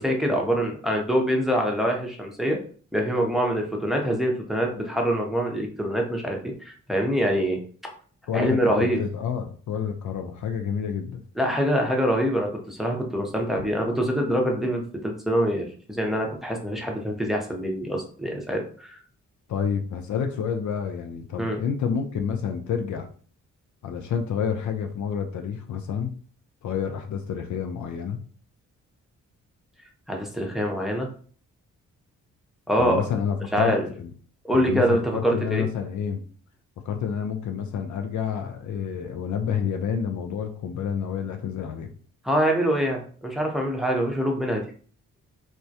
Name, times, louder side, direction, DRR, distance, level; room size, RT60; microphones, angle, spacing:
voice 1, 0.0-2.6 2.9-7.9 8.3-9.0 11.4-19.0 21.4-21.6 30.1-31.1 32.7-33.0 33.5-33.8 34.4-35.6 42.2-44.6, equal, ahead, 1 dB, 0.7 m, -25 dB
voice 2, 8.3-11.2 19.5-23.1 23.8-26.2 26.6-28.2 32.8-34.1 34.5-36.2 36.9-41.9, left 7 dB, 60° left, 5 dB, 0.4 m, -29 dB
2.2 x 2.1 x 2.7 m, 0.43 s
supercardioid pair, 50°, 33 cm